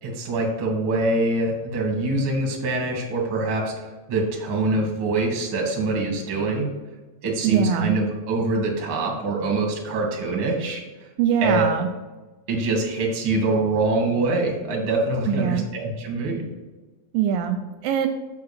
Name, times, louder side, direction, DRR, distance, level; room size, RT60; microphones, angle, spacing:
voice 1, 0.0-6.7 7.2-10.8 11.4-11.6 12.5-16.5, right 2 dB, 45° right, 0 dB, 1.9 m, -24 dB
voice 2, 7.4-7.9 11.2-11.9 15.3-15.7 17.1-18.1, right 8 dB, 85° right, 6 dB, 2.2 m, -22 dB
6.8 x 4.7 x 6.7 m, 1.2 s
omnidirectional pair, 4.1 m